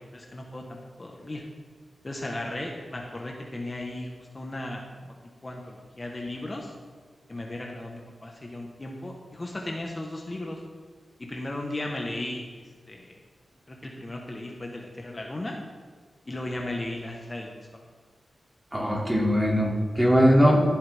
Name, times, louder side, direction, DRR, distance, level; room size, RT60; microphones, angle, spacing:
voice 1, 0.1-1.4 2.0-5.1 5.4-6.7 7.3-10.6 11.2-13.1 13.7-15.6 16.3-17.8, left 1 dB, 35° left, 0 dB, 1.3 m, -36 dB
voice 2, 18.7-20.6, equal, 10° right, -2 dB, 2.7 m, -20 dB
14.5 x 7.9 x 3.6 m, 1.5 s
cardioid pair, 65°, 0 cm